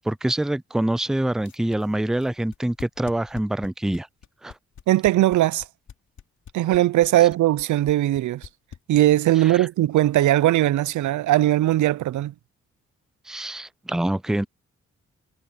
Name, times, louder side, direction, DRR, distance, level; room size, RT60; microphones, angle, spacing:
voice 1, 0.0-4.1 4.4-4.5 9.4-9.7 13.3-14.5, right 1 dB, ahead, 0.4 m, -25 dB
sound 1, 1.4-9.3, left 8 dB, 75° left, 2.8 m, -44 dB
voice 2, 4.9-5.6 6.5-8.5 8.9-12.3, right 14 dB, 85° right, 0.5 m, -19 dB
cardioid pair, 60°, 29 cm